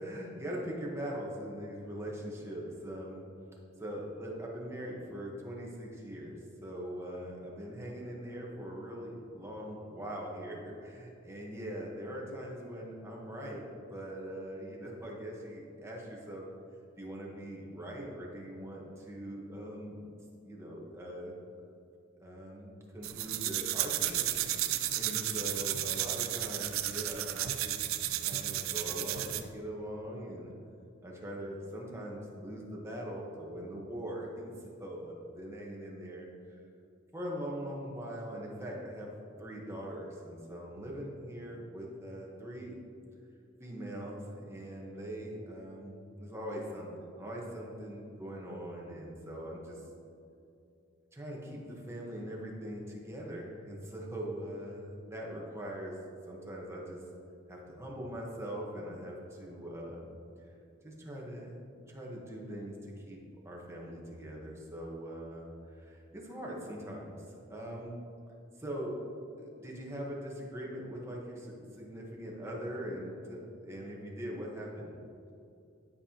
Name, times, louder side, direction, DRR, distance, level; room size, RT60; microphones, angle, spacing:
voice 1, 0.0-3.2 3.8-16.5 17.0-20.0 20.4-21.3 22.2-24.3 24.6-27.8 28.2-30.5 31.0-36.3 37.1-39.1 39.4-42.8 43.6-49.8 51.1-57.0 57.5-60.1 60.4-60.5 60.8-61.6 61.9-63.2 63.4-68.0 68.6-69.0 69.4-74.9, equal, 15° right, -3 dB, 1.1 m, -42 dB
sound 1, 23.0-29.5, right 13 dB, 80° right, 0.4 m, -33 dB
11.5 x 5.5 x 2.9 m, 2.6 s
head